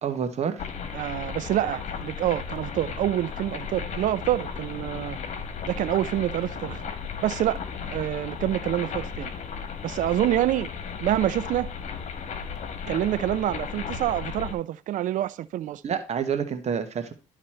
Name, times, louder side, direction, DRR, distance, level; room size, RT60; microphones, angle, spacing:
voice 1, 0.0-0.7 15.8-17.1, right 7 dB, 55° right, 1.3 m, -28 dB
sound 1, 0.6-14.5, left 6 dB, 60° left, 1.4 m, -35 dB
voice 2, 0.9-5.2 5.6-6.8 7.2-9.3 9.8-10.7 11.0-11.7 12.9-15.8, right 13 dB, 75° right, 0.6 m, -27 dB
12.5 x 4.1 x 4.4 m
cardioid pair, 80°, 13 cm